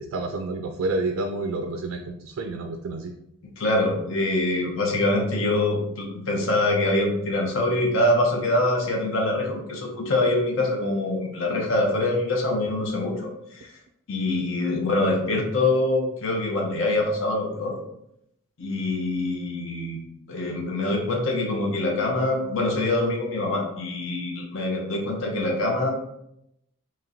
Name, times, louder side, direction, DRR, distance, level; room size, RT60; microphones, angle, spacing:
voice 1, 0.0-3.1, right 2 dB, 75° right, 5 dB, 0.3 m, -29 dB
voice 2, 3.6-13.7 14.1-17.8 18.6-20.0 20.3-25.9, left 2 dB, 65° left, 0 dB, 0.8 m, -24 dB
4.2 x 3.0 x 2.6 m, 0.80 s
head